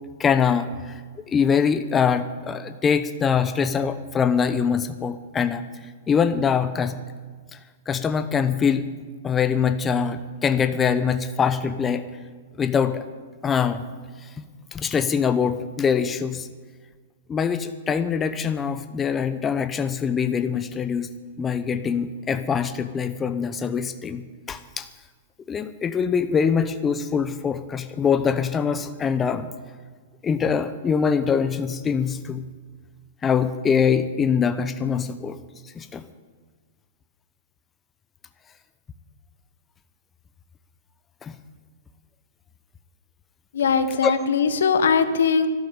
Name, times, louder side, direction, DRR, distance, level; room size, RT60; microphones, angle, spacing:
voice 1, 0.2-1.0 1.3-7.0 7.5-7.6 7.9-8.9 9.2-12.0 12.6-13.0 13.4-13.8 14.2-14.4 14.7-16.5 17.3-21.1 21.4-24.2 24.5-24.9 25.5-29.5 30.2-32.5 33.2-35.4 35.7-36.0 41.2-41.4 44.0-44.1, left 6 dB, 20° left, 11 dB, 0.9 m, -23 dB
voice 2, 43.5-45.5, left 6 dB, 75° left, 11 dB, 1.2 m, -20 dB
13.0 x 12.0 x 8.7 m, 1.5 s
hypercardioid pair, 110°, 0 cm